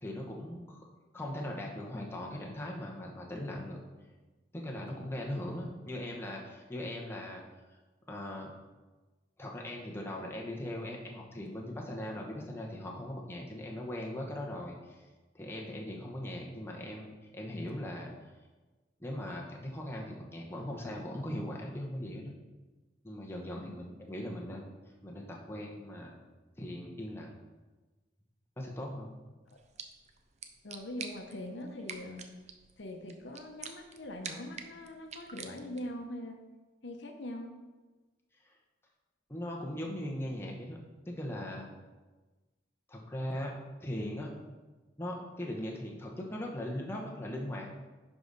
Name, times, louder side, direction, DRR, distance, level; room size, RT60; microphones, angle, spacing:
voice 1, 0.0-0.9 1.1-3.8 4.5-7.4 8.1-8.5 9.4-15.0 15.3-18.1 19.0-22.4 23.0-24.7 25.0-26.1 26.6-27.4 28.6-29.1 39.3-40.8 41.1-41.7 42.9-43.5 43.8-44.3 45.0-47.7, left 1 dB, 15° left, -1 dB, 1.0 m, -39 dB
sound 1, 29.5-36.0, right 6 dB, 35° right, 0.6 m, -48 dB
voice 2, 30.6-32.3 32.8-36.4 36.8-37.5, left 1 dB, 75° left, 4 dB, 0.9 m, -42 dB
11.0 x 4.9 x 4.0 m, 1.2 s
head